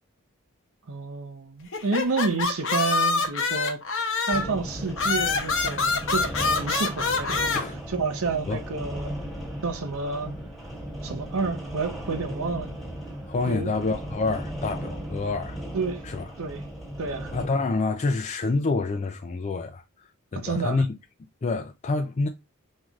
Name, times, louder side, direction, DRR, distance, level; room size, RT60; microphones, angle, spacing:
voice 1, 0.9-3.8 4.3-6.3 6.6-7.4 7.9-9.1 9.6-10.3 11.0-12.7 13.5-13.7 15.7-16.0 16.4-16.7 17.0-17.3 20.3-20.8, right 4 dB, 65° right, 0.7 m, -29 dB
sound 1, 1.7-4.5 5.0-7.6, left 4 dB, 60° left, 0.8 m, -25 dB
sound 2, 4.3-17.5, equal, ahead, 1.5 m, -36 dB
voice 2, 13.3-15.6 16.0-16.3 17.3-20.9 21.4-22.3, left 3 dB, 30° left, 0.4 m, -27 dB
5.4 x 3.1 x 2.4 m
head